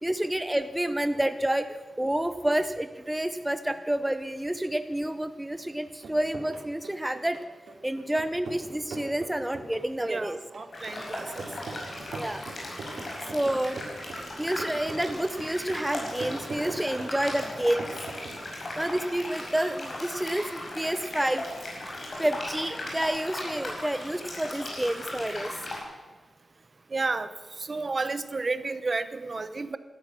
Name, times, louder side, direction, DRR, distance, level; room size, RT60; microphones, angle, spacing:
voice 1, 0.0-7.4 7.8-10.4 12.2-12.4 13.3-13.8 14.4-17.9 18.8-21.5 22.2-25.5, right 1 dB, 10° right, 10 dB, 0.6 m, -29 dB
sound 1, 5.8-18.4, right 3 dB, 75° right, 3.0 m, -42 dB
voice 2, 10.1-11.5 26.9-27.3 27.6-29.8, right 3 dB, 35° right, 13 dB, 0.8 m, -31 dB
sound 2, 10.7-25.8, left 1 dB, 50° left, 5.4 m, -37 dB
18.0 x 13.0 x 6.3 m, 1.3 s
wide cardioid pair, 130°, 0 cm